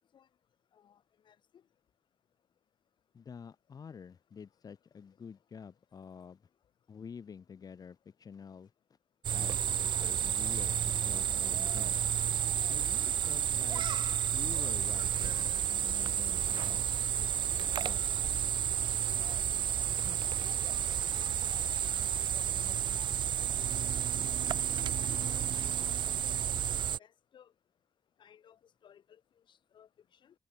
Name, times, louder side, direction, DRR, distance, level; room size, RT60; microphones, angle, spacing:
voice 1, 0.7-1.6 23.5-23.9 25.0-25.7 26.0-27.5 28.2-29.2 29.5-30.3, left 9 dB, 85° left, 7.5 m, -61 dB
voice 2, 3.1-6.4 6.9-8.7 9.3-12.0 12.7-13.8 14.3-16.9 17.6-18.0, left 6 dB, 55° left, 2.8 m, -48 dB
sound 1, 9.2-27.0, right 9 dB, 85° right, 1.3 m, -31 dB
wide cardioid pair, 120°, 8 cm